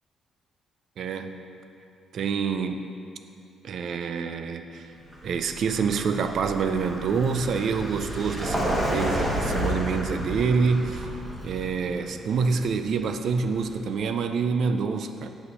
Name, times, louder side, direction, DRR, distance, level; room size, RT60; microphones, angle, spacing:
voice 1, 1.0-1.4 2.1-2.9 3.6-4.9 5.2-11.1 11.4-15.3, right 5 dB, 65° right, 8 dB, 0.4 m, -27 dB
Vehicle, 5.0-13.8, equal, 15° right, 1.7 m, -31 dB
7.8 x 5.6 x 4.1 m, 2.6 s
cardioid pair, 90°, 0 cm